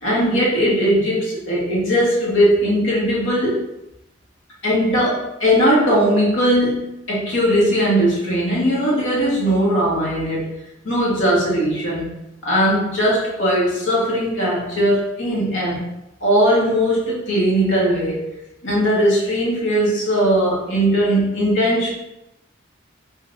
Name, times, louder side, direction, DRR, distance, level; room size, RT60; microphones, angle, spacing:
voice 1, 0.0-3.6 4.6-10.5 10.8-12.1 12.4-15.9 16.2-18.2 18.6-21.9, equal, 85° left, -5 dB, 1.4 m, -19 dB
5.2 x 2.7 x 2.6 m, 0.88 s
head